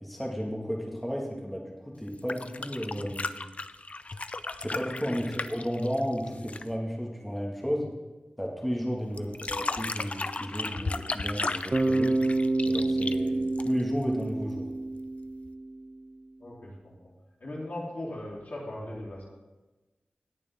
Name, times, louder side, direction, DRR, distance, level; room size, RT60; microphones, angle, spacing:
voice 1, 0.0-3.4 4.6-7.9 8.4-12.2 12.7-13.4 13.6-14.7, equal, 5° left, -3 dB, 1.8 m, -33 dB
sound 1, 2.1-6.8 9.2-14.0 15.5-15.6, left 3 dB, 45° left, 0.4 m, -35 dB
Bass guitar, 11.7-15.8, right 2 dB, 35° right, 0.8 m, -28 dB
voice 2, 16.4-16.9 17.4-19.3, left 1 dB, 70° left, -5 dB, 3.5 m, -38 dB
18.0 x 7.0 x 3.6 m, 1.2 s
wide cardioid pair, 85°, 3 cm